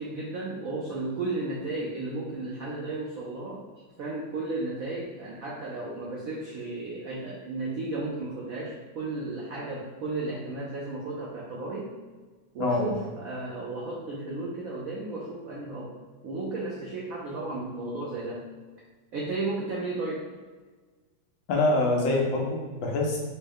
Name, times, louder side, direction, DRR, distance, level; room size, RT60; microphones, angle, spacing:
voice 1, 0.0-3.6 4.0-11.9 12.5-18.5 19.1-20.3, right 2 dB, 75° right, -5 dB, 0.7 m, -34 dB
voice 2, 12.6-13.0 21.5-23.2, left 2 dB, 75° left, -1 dB, 1.4 m, -25 dB
4.3 x 2.1 x 3.6 m, 1.4 s
omnidirectional pair, 2.2 m